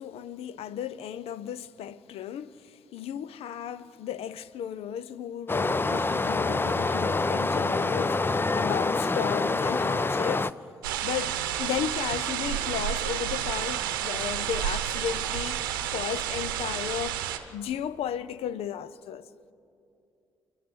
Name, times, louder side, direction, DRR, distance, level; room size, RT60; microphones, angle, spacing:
voice 1, 0.0-10.6 11.0-17.2 17.5-19.3, left 9 dB, 65° left, 0.7 m, -35 dB
Stream, 5.5-10.5, left 3 dB, 20° left, 0.6 m, -26 dB
sound 1, 10.8-17.4, right 11 dB, 85° right, 0.9 m, -30 dB
29.0 x 11.5 x 7.9 m
hypercardioid pair, 40°, 11 cm